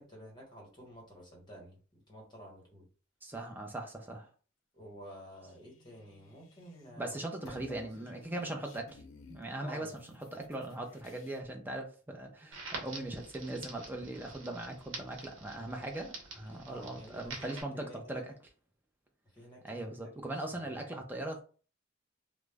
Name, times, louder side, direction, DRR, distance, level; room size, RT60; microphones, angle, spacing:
voice 1, 0.0-1.8 2.1-2.9 4.7-8.2 9.6-10.0 16.7-18.2 19.3-19.9 20.2-20.8, equal, 20° left, -1 dB, 1.0 m, -51 dB
voice 2, 3.2-4.3 7.0-9.0 9.3-9.9 10.3-18.3 19.6-21.4, right 1 dB, 10° right, 2 dB, 0.4 m, -40 dB
sound 1, 5.3-7.0 7.3-11.4, left 3 dB, 85° left, 0.5 m, -56 dB
Crackle, 12.5-17.6, right 3 dB, 80° right, 0.8 m, -46 dB
2.3 x 2.0 x 3.3 m, 0.38 s
head